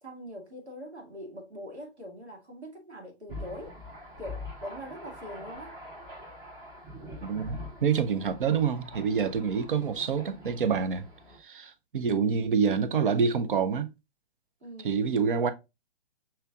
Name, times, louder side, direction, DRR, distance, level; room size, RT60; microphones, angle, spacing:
voice 1, 0.0-3.8 4.2-5.8 14.6-15.2, equal, 80° right, 2.1 m, -43 dB
Thunder, 3.3-11.4, left 1 dB, 10° right, 0.6 m, -44 dB
voice 2, 7.2-11.1 11.4-13.9 14.8-15.5, right 6 dB, 55° right, 0.7 m, -27 dB
5.7 x 3.3 x 2.3 m
figure-of-eight pair, 130°, 33 cm